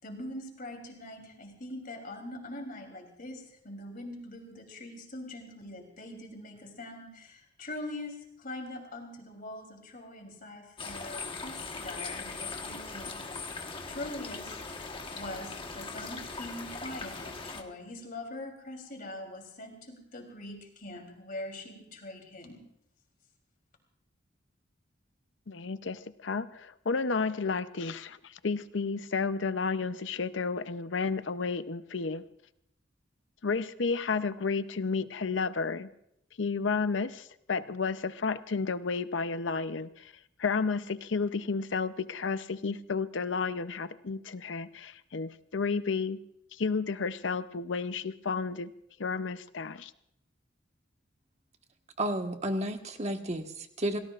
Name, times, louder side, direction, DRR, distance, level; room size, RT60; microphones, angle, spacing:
voice 1, 0.0-13.3 13.9-14.6 15.1-22.6, left 1 dB, 50° left, 2 dB, 3.4 m, -43 dB
sound 1, 10.8-17.6, left 4 dB, 30° left, 1.3 m, -40 dB
voice 2, 25.5-32.2 33.4-35.9 36.4-40.1 40.4-46.2 46.5-48.7 49.0-49.9, left 4 dB, 75° left, 13 dB, 0.7 m, -32 dB
voice 3, 52.0-54.0, right 1 dB, 35° right, 5 dB, 1.4 m, -32 dB
28.5 x 18.0 x 2.5 m, 0.76 s
head